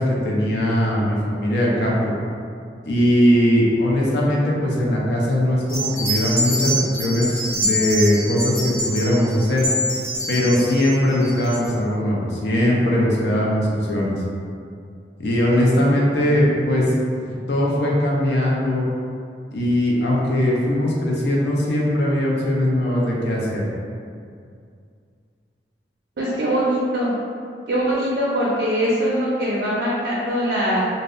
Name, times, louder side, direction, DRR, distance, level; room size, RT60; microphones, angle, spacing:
voice 1, 0.0-2.0 2.9-9.7 10.3-14.1 15.2-16.9 17.3-18.8 19.5-23.6, left 1 dB, 75° left, -4 dB, 0.5 m, -20 dB
sound 1, 5.7-11.7, equal, 55° left, 1.2 m, -26 dB
voice 2, 26.2-27.1 27.7-30.8, equal, 70° right, -6 dB, 0.4 m, -22 dB
2.6 x 2.0 x 2.4 m, 2.3 s
head